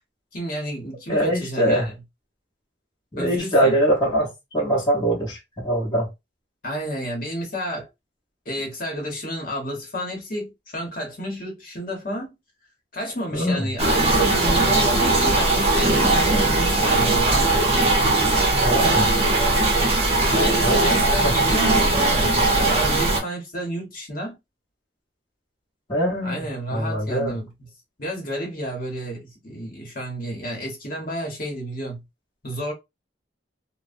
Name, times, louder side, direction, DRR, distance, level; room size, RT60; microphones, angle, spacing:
voice 1, 0.3-1.9 3.2-3.7 6.6-7.9 8.4-12.3 12.9-17.5 20.0-24.4 26.2-27.5 28.0-32.0 32.4-32.7, equal, 50° left, 1.1 m, -31 dB
voice 2, 1.1-1.9 3.1-6.1 13.3-13.6 18.6-19.1 20.6-21.4 25.9-27.4, right 1 dB, 25° left, 1.0 m, -23 dB
sound 1, 13.8-23.2, right 2 dB, 35° right, 0.7 m, -19 dB
3.0 x 2.1 x 2.5 m
head